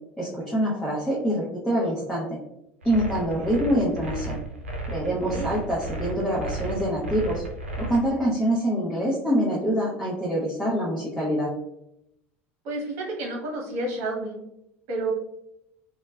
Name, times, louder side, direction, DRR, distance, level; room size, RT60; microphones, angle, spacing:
voice 1, 0.2-2.4 2.8-4.4 4.9-7.4 7.8-11.5, equal, 10° left, -7 dB, 0.8 m, -25 dB
sound 1, 2.8-8.0, right 2 dB, 85° right, 0.5 m, -33 dB
voice 2, 12.6-14.4 14.9-15.1, right 2 dB, 55° right, -1 dB, 1.0 m, -30 dB
3.0 x 2.2 x 2.2 m, 0.81 s
hypercardioid pair, 75°, 7 cm